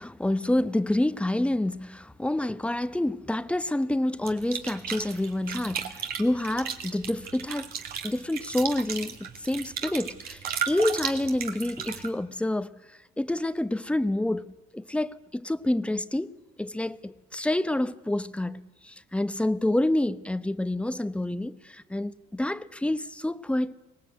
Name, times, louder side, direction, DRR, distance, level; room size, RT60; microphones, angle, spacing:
voice 1, 0.0-7.7 8.0-12.7 13.2-16.3 16.6-23.7, left 1 dB, 5° left, 0.8 m, -28 dB
sound 1, 4.2-12.1, right 8 dB, 65° right, 2.5 m, -35 dB
24.0 x 19.0 x 9.2 m
cardioid pair, 110°, 17 cm